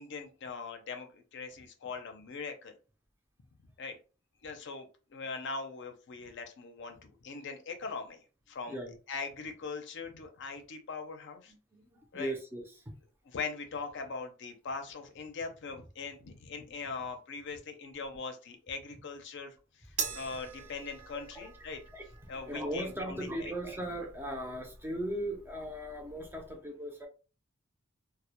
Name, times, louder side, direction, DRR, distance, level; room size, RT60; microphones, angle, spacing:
voice 1, 0.0-2.7 3.8-4.0 4.4-8.8 9.1-11.5 12.1-12.3 13.3-19.5 19.9-21.8 22.3-23.5, left 4 dB, 60° left, 0.5 m, -41 dB
voice 2, 11.5-13.0 20.0-20.2 21.3-21.5 21.9-27.1, right 1 dB, 10° right, 0.4 m, -38 dB
sound 1, 20.0-26.5, right 6 dB, 85° right, 0.6 m, -44 dB
2.1 x 2.0 x 2.9 m
head